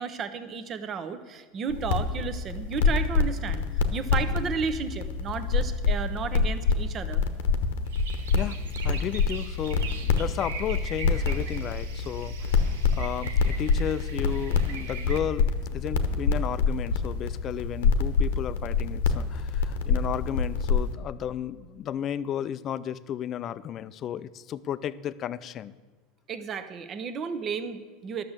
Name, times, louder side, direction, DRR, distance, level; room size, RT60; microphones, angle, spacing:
voice 1, 0.0-3.6 3.9-7.2 26.3-28.2, right 6 dB, 35° right, 11 dB, 0.9 m, -33 dB
sound 1, 1.7-20.9, left 5 dB, 85° left, 1.0 m, -26 dB
sound 2, 7.9-15.2, right 6 dB, 90° right, 1.2 m, -42 dB
voice 2, 8.3-12.6 12.9-25.8, left 10 dB, 40° left, 16 dB, 0.4 m, -33 dB
11.5 x 6.5 x 7.4 m, 1.4 s
supercardioid pair, 115°, 0 cm